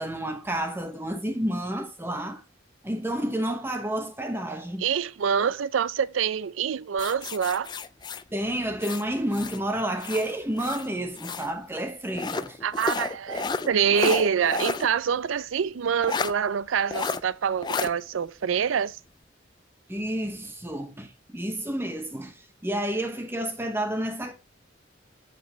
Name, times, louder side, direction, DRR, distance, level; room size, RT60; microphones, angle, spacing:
voice 1, 0.0-2.4 2.8-4.8 8.3-12.6 19.9-24.3, right 1 dB, 10° right, 0.8 m, -30 dB
voice 2, 4.8-7.7 12.6-19.0, right 7 dB, 90° right, 0.4 m, -26 dB
sound 1, 7.0-9.6 10.0-11.5 12.1-14.9 15.2-15.3 16.0-16.3 16.9-17.2 17.6-17.9, left 4 dB, 20° left, 0.3 m, -31 dB
8.1 x 5.1 x 3.2 m
head